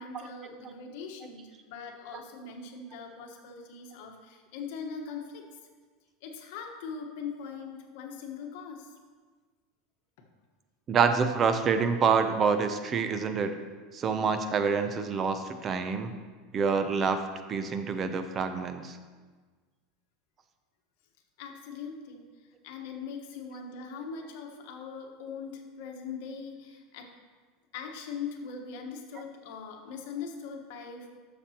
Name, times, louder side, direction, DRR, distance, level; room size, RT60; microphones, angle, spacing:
voice 1, 0.0-5.4 6.2-8.9 21.4-22.3 22.6-27.1 27.7-31.1, left 5 dB, 70° left, 3 dB, 1.2 m, -41 dB
voice 2, 10.9-13.5 13.9-16.1 16.5-17.2 17.5-19.0, right 5 dB, 30° right, 8 dB, 0.5 m, -27 dB
11.5 x 6.8 x 2.9 m, 1.4 s
supercardioid pair, 145°, 0 cm